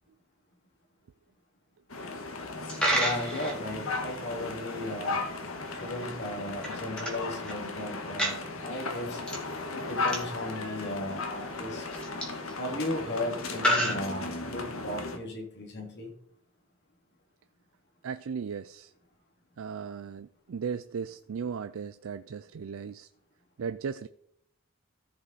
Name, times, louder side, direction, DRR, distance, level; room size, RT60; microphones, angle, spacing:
sound 1, 1.9-15.2, left 3 dB, 75° left, 1.4 m, -36 dB
Coin (dropping), 2.5-14.8, equal, 5° left, 2.4 m, -35 dB
voice 1, 2.9-5.2 5.7-9.2 9.7-11.9 12.5-16.1, left 1 dB, 50° left, 2.4 m, -36 dB
voice 2, 18.0-18.9 19.6-23.1 23.6-24.1, right 6 dB, 70° right, 0.4 m, -36 dB
14.5 x 5.4 x 4.1 m
head